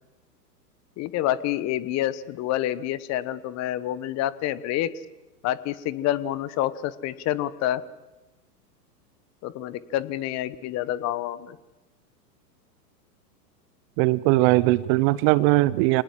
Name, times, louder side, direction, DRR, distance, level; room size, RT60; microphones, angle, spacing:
voice 1, 1.0-4.9 5.4-7.8 9.4-11.6, left 13 dB, 35° left, 17 dB, 1.2 m, -28 dB
voice 2, 14.0-16.0, right 19 dB, 35° right, 19 dB, 0.8 m, -20 dB
25.5 x 19.0 x 7.6 m, 1.0 s
hypercardioid pair, 105°, 48 cm